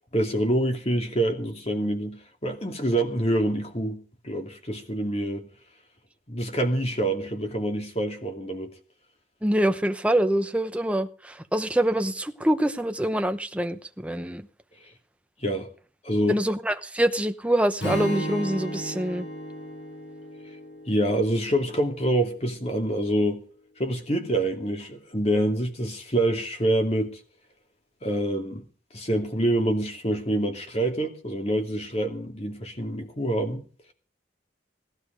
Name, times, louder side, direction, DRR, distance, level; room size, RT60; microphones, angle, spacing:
voice 1, 0.1-5.5 6.3-8.7 15.4-15.7 16.0-16.4 20.9-23.4 23.8-27.2 28.0-28.6 28.9-33.6, right 1 dB, 35° left, 2.5 m, -26 dB
voice 2, 9.4-14.5 16.3-19.3, right 1 dB, 5° right, 0.9 m, -25 dB
Strum, 17.8-22.0, right 1 dB, 60° left, 5.8 m, -34 dB
19.0 x 12.0 x 5.2 m
head